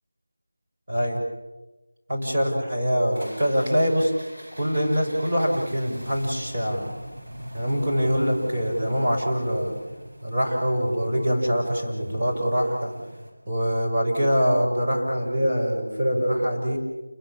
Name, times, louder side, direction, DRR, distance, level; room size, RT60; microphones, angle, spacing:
voice 1, 0.9-1.2 2.1-4.1 4.6-6.9 7.5-9.7 10.2-12.9 13.4-16.8, equal, 30° right, -3 dB, 6.6 m, -24 dB
sound 1, 3.1-13.3, equal, 50° right, 7.7 m, -40 dB
29.5 x 22.0 x 7.5 m, 1.1 s
figure-of-eight pair, 175°, 0 cm